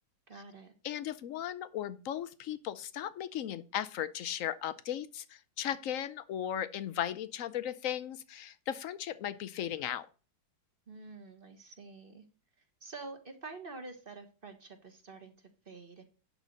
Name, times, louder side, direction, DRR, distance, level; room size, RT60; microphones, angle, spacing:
voice 1, 0.3-0.7 10.9-12.3 12.8-16.0, right 3 dB, 30° right, 7 dB, 1.3 m, -48 dB
voice 2, 0.8-10.1, left 10 dB, 75° left, 14 dB, 0.7 m, -36 dB
11.0 x 3.9 x 6.6 m, 0.37 s
omnidirectional pair, 2.0 m